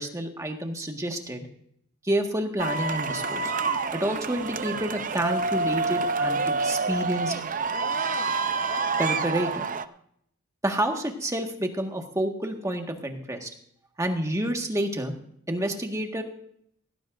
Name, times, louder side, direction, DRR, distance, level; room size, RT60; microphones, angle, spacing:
voice 1, 0.0-1.5 2.0-3.6 3.9-6.4 6.6-7.3 9.0-9.7 10.6-13.5 14.0-15.1 15.5-16.2, right 1 dB, 15° right, 3 dB, 1.6 m, -29 dB
sound 1, 2.6-9.8, right 4 dB, 35° right, 0.6 m, -27 dB
17.5 x 16.0 x 2.6 m, 0.68 s
head